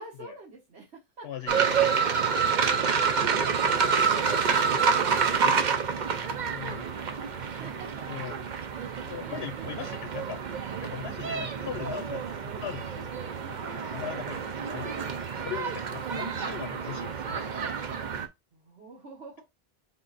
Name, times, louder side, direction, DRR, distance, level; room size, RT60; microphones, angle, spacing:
voice 1, 0.0-1.6 5.1-8.1 8.7-10.1 13.4-14.0 18.5-19.4, right 3 dB, 85° right, 1.6 m, -49 dB
voice 2, 1.2-2.0 6.5-6.9 8.1-8.4 9.1-10.4 10.8-12.3 12.6-13.1 13.9-14.4 14.7-15.1 15.4-17.5, left 10 dB, 75° left, 0.8 m, -39 dB
sound 1, 1.5-18.3, right 6 dB, 50° right, 0.7 m, -28 dB
3.7 x 3.5 x 4.0 m
omnidirectional pair, 1.1 m